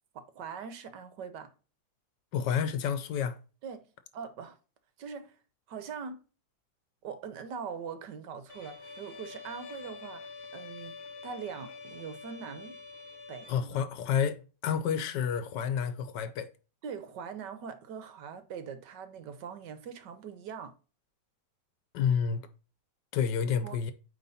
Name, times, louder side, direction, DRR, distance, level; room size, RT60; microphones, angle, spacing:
voice 1, 0.1-1.5 3.6-3.8 4.1-4.6 5.0-5.4 5.7-6.2 7.0-10.9 11.2-12.8 13.3-13.7 16.8-20.7 23.4-23.8, right 6 dB, 70° right, 1.5 m, -42 dB
voice 2, 2.3-3.4 13.5-16.5 21.9-22.4 23.1-23.9, left 7 dB, 70° left, 1.4 m, -29 dB
Bowed string instrument, 8.5-13.5, left 4 dB, 50° left, 1.5 m, -46 dB
9.0 x 3.4 x 4.1 m
omnidirectional pair, 2.0 m